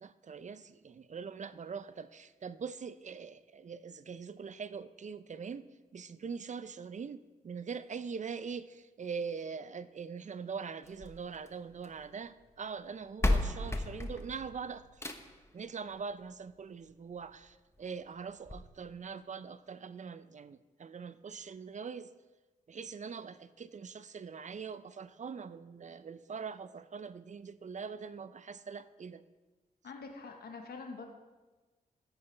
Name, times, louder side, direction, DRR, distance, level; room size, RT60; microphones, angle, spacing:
voice 1, 0.0-5.7 5.9-15.0 15.5-22.1 22.7-29.2, right 5 dB, 45° right, 14 dB, 0.6 m, -43 dB
sound 1, 10.8-12.0 12.9-13.0 13.2-15.5 16.8-16.9 17.4-17.5 17.8-17.9 18.5-18.6, left 1 dB, 15° left, 1.1 m, -33 dB
voice 2, 29.8-31.0, left 4 dB, 70° left, 3 dB, 1.3 m, -45 dB
13.5 x 8.9 x 3.4 m, 1.2 s
cardioid pair, 50°, 17 cm